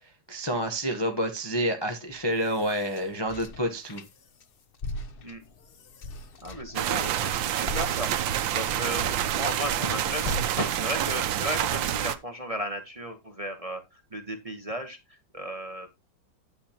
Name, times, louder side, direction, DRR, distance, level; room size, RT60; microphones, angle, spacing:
voice 1, 0.3-4.0, equal, 25° left, 0.6 m, -28 dB
sound 1, 2.1-4.4 4.7-9.8 10.2-10.9, left 1 dB, 80° left, 0.5 m, -40 dB
voice 2, 6.4-15.9, equal, 25° right, 0.9 m, -35 dB
sound 2, 6.8-12.2, right 11 dB, 90° right, 1.5 m, -28 dB
9.5 x 8.3 x 2.9 m
omnidirectional pair, 2.1 m